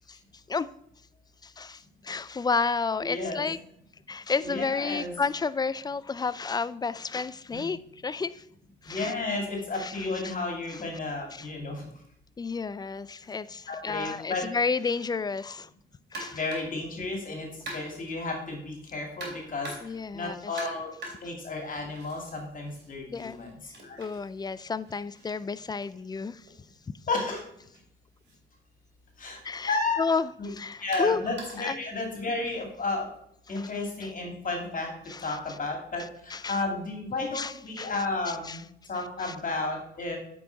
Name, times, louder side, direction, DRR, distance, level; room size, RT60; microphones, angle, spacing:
voice 1, 1.4-3.6 4.1-8.4 8.8-9.1 9.7-10.1 10.7-10.8 11.3-11.5 12.4-15.7 16.1-16.4 19.8-20.6 23.1-23.4 24.0-26.5 29.4-31.2 31.6-31.8 33.6-33.7 35.1-35.4 36.3-36.6 37.3-37.9 38.3-38.6 39.2-39.3, left 4 dB, 20° left, 17 dB, 0.4 m, -31 dB
voice 2, 3.0-3.5 4.4-5.1 7.5-7.6 8.9-11.9 13.7-14.4 16.3-19.8 20.1-20.9 21.2-24.0 27.1-27.4 29.2-29.4 29.7-30.0 30.4-30.5 30.8-33.1 33.5-34.9 35.2-38.6 38.9-40.2, left 3 dB, 40° left, 2 dB, 2.5 m, -32 dB
sound 1, 16.1-16.8 17.7-18.1 19.2-20.0 20.6-22.3 22.7-26.5 27.6-27.8 28.2-28.3 29.3-29.4 30.9-31.7, right 2 dB, 60° right, 3.3 m, -43 dB
8.8 x 5.5 x 4.6 m, 0.71 s
cardioid pair, 90°, 20 cm